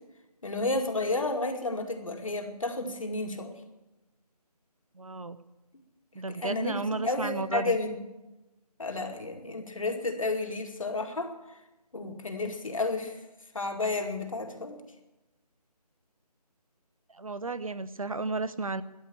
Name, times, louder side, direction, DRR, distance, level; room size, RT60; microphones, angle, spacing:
voice 1, 0.4-3.6 6.3-8.0 8.8-11.3 11.9-13.2 13.5-14.8, left 2 dB, 55° left, 4 dB, 2.3 m, -31 dB
voice 2, 4.9-5.4 6.1-7.8 17.1-18.8, right 3 dB, 55° right, 14 dB, 0.9 m, -33 dB
13.5 x 10.5 x 9.9 m, 1.0 s
figure-of-eight pair, 165°, 21 cm